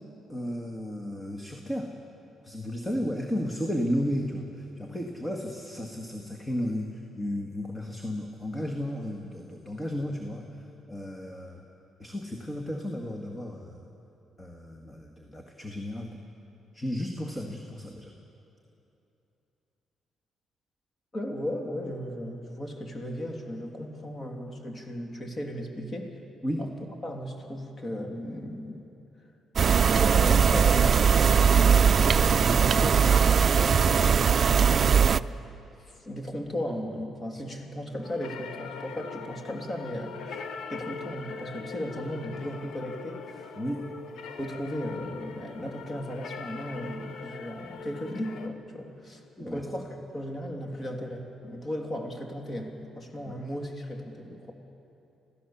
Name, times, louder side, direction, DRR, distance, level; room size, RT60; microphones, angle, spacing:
voice 1, 0.3-1.9 2.4-10.5 10.9-11.6 12.0-13.9 14.4-16.2 16.7-18.1 26.4-26.6 43.6-43.9 49.4-49.7 53.3-53.4, equal, 15° left, 2 dB, 1.9 m, -33 dB
voice 2, 21.1-26.1 26.6-26.7 27.0-28.9 29.8-34.1 34.6-35.2 35.8-40.4 40.7-43.2 44.4-54.5, equal, 35° left, 2 dB, 3.1 m, -36 dB
sound 1, 29.6-35.2, right 7 dB, 45° right, 0.4 m, -20 dB
sound 2, 38.0-48.5, left 5 dB, 80° left, 1.2 m, -41 dB
27.0 x 16.0 x 7.2 m, 2.9 s
cardioid pair, 90°, 0 cm